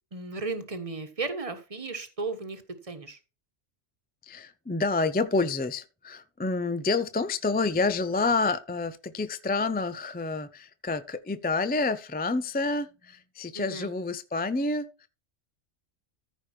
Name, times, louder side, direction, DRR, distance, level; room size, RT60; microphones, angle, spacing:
voice 1, 0.1-3.2 13.5-13.9, right 3 dB, 30° right, 1.3 m, -35 dB
voice 2, 4.2-15.1, left 3 dB, 15° left, 0.4 m, -28 dB
14.5 x 5.0 x 4.4 m
omnidirectional pair, 1.3 m